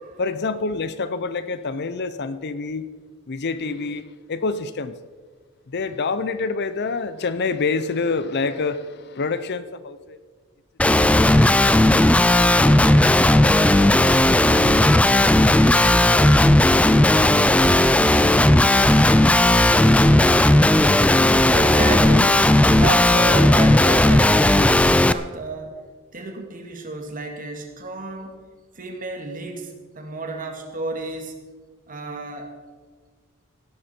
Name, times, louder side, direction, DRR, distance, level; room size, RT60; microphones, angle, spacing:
voice 1, 0.2-2.9 3.3-5.0 5.7-10.2, left 4 dB, 50° left, 13 dB, 0.6 m, -27 dB
Guitar, 10.8-25.1, left 1 dB, 5° left, 0.3 m, -15 dB
voice 2, 21.5-25.8 26.1-28.4 28.8-31.4 31.9-32.5, right 3 dB, 40° right, 4 dB, 2.0 m, -31 dB
16.5 x 12.0 x 4.4 m, 1.5 s
head